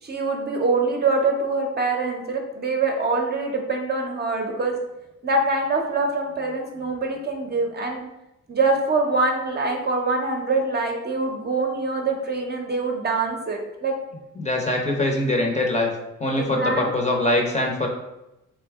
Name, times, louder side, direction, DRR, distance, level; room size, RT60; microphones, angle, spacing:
voice 1, 0.0-4.8 5.2-8.0 8.5-13.9 16.3-17.2, right 3 dB, 35° right, 1 dB, 0.7 m, -24 dB
voice 2, 14.4-15.9 16.2-17.9, left 1 dB, 25° left, 1 dB, 0.7 m, -23 dB
3.5 x 2.7 x 3.5 m, 0.92 s
cardioid pair, 90°, 30 cm